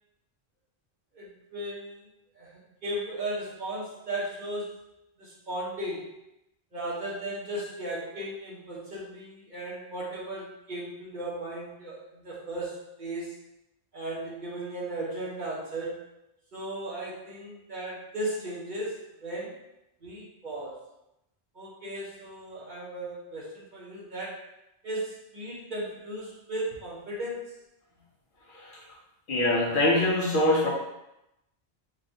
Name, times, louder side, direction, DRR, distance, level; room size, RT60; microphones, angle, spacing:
voice 1, 1.1-2.1 2.3-2.5 2.8-4.7 5.2-6.1 6.7-13.3 13.9-16.0 16.5-19.5 20.0-20.8 21.5-24.4 24.8-27.5, right 1 dB, 50° right, -6 dB, 1.1 m, -36 dB
voice 2, 29.3-30.7, left 1 dB, 55° left, -2 dB, 0.8 m, -23 dB
5.3 x 2.4 x 2.6 m, 0.87 s
omnidirectional pair, 1.1 m